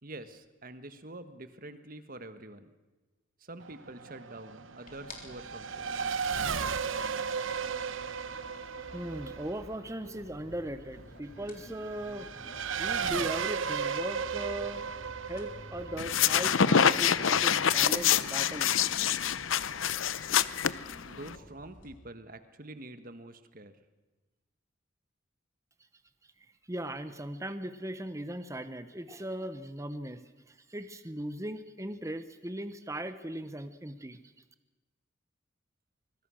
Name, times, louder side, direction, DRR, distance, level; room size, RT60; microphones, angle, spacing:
voice 1, 0.0-2.7 3.4-6.0 21.0-23.8, right 1 dB, 45° right, 10 dB, 1.5 m, -46 dB
Race car auto racing / Accelerating revving vroom, 3.6-17.7, right 6 dB, 85° right, 0.9 m, -35 dB
sound 1, 4.8-22.0, left 1 dB, 45° left, 3.7 m, -52 dB
voice 2, 8.9-12.3 12.8-14.8 15.2-18.8 26.7-34.2, right 1 dB, 15° right, 11 dB, 0.9 m, -38 dB
sound 2, 16.0-21.3, left 8 dB, 85° left, 0.7 m, -26 dB
24.5 x 22.0 x 6.4 m, 1.2 s
head